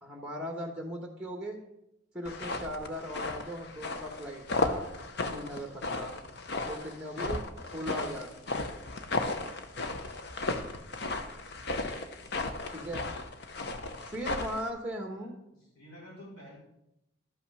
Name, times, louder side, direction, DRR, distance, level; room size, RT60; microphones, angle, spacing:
voice 1, 0.0-1.6 2.1-4.9 5.2-6.1 6.7-7.4 7.7-8.3 12.7-13.1 14.0-15.3, equal, 5° right, 1 dB, 1.3 m, -38 dB
sound 1, 2.2-14.7, left 2 dB, 50° left, 0.8 m, -35 dB
voice 2, 15.1-16.6, equal, 90° left, -5 dB, 4.5 m, -52 dB
12.0 x 5.7 x 5.5 m, 0.83 s
head